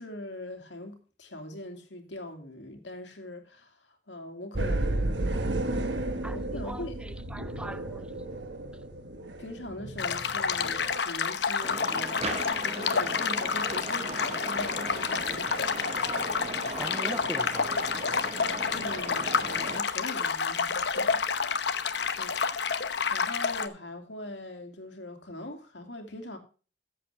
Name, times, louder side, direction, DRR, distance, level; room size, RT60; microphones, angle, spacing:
voice 1, 0.0-5.4 6.3-7.0 9.4-15.5 18.7-22.4 23.1-26.4, left 1 dB, 85° left, 2.4 m, -42 dB
sound 1, 4.5-11.0, right 1 dB, 85° right, 1.5 m, -33 dB
voice 2, 6.2-8.1 16.7-17.7, right 1 dB, 5° right, 0.5 m, -40 dB
sound 2, 10.0-23.7, left 5 dB, 70° left, 0.9 m, -29 dB
sound 3, 11.6-19.8, right 2 dB, 35° right, 1.2 m, -38 dB
14.5 x 7.9 x 3.3 m
head